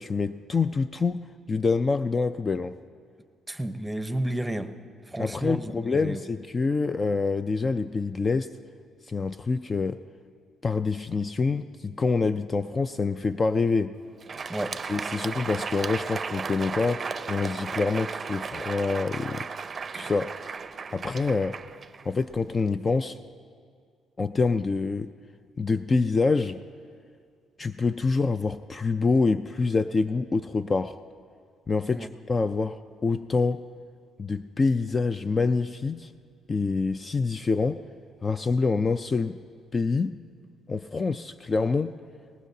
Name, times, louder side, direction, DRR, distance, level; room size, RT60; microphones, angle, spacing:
voice 1, 0.0-2.8 5.2-8.5 9.1-10.0 10.6-13.9 14.9-19.5 19.9-20.4 20.9-21.6 22.0-23.2 24.2-25.1 25.6-26.6 27.6-31.0 31.7-33.6 34.2-36.1 36.5-37.8 38.2-39.4 39.7-40.2 40.7-42.0, left 4 dB, 35° left, 11 dB, 0.4 m, -26 dB
voice 2, 3.5-4.7 5.1-6.2 14.5-14.8 31.9-32.1, right 1 dB, 10° right, 9 dB, 0.8 m, -31 dB
Crowd, 14.1-22.6, right 5 dB, 40° right, 0.5 m, -35 dB
19.5 x 19.0 x 2.8 m, 2.1 s
supercardioid pair, 75°, 0 cm